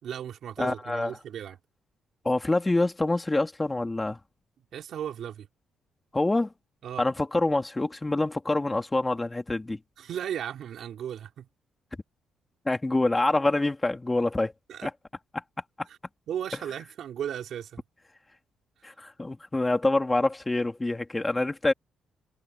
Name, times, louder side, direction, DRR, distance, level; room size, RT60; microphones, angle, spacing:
voice 1, 0.0-1.6 4.7-5.5 6.8-7.0 10.0-11.5 14.7-14.9 15.9-16.0 16.3-17.8, right 9 dB, 70° right, 4.4 m, -36 dB
voice 2, 0.6-1.2 2.2-4.2 6.1-6.5 7.0-9.8 12.6-14.5 14.8-14.9 15.3-15.4 15.8-15.9 18.8-21.7, left 2 dB, 15° left, 2.6 m, -26 dB
cardioid pair, 90°, 0 cm